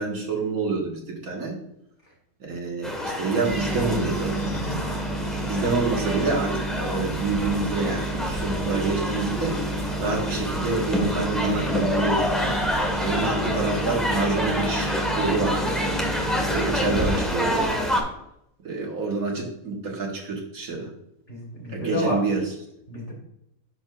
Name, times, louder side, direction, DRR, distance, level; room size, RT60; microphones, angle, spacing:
voice 1, 0.0-1.6 2.4-4.3 5.4-12.6 13.0-16.0 16.5-17.7 18.6-20.9 21.7-22.5, right 3 dB, 75° right, 0 dB, 2.0 m, -27 dB
sound 1, 2.8-18.0, equal, ahead, 1.3 m, -28 dB
sound 2, 3.4-17.2, right 1 dB, 75° left, 2.5 m, -31 dB
voice 2, 4.8-5.2 21.3-22.2 22.9-23.1, left 1 dB, 50° left, -2 dB, 3.0 m, -31 dB
10.5 x 4.7 x 2.4 m, 0.79 s
omnidirectional pair, 1.5 m